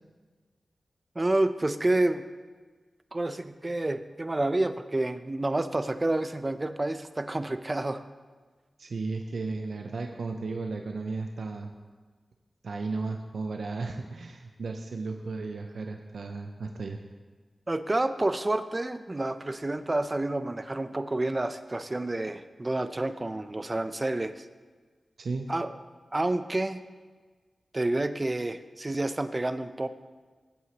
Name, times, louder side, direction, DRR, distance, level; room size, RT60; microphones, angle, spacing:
voice 1, 1.2-2.2 3.1-8.0 17.7-24.4 25.5-25.7 26.1-26.8 27.7-29.9, right 2 dB, 35° right, 11 dB, 0.7 m, -29 dB
voice 2, 8.8-11.7 12.6-17.0 25.2-25.5, right 3 dB, 80° right, 4 dB, 0.6 m, -34 dB
16.5 x 8.1 x 3.0 m, 1.4 s
cardioid pair, 40°, 0 cm